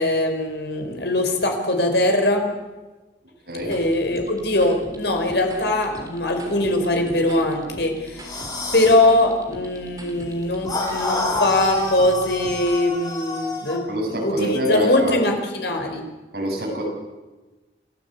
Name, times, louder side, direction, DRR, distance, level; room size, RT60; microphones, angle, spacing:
voice 1, 0.0-2.5 3.6-8.4 8.7-16.0, left 1 dB, 75° left, 4 dB, 4.7 m, -21 dB
sound 1, 3.6-12.8, equal, 20° right, 3.6 m, -41 dB
sound 2, 8.2-9.0 10.7-13.8, left 2 dB, 20° left, 5.5 m, -28 dB
voice 2, 13.9-15.2 16.3-16.8, equal, 70° right, -1 dB, 7.8 m, -25 dB
27.5 x 15.5 x 8.3 m, 1.2 s
head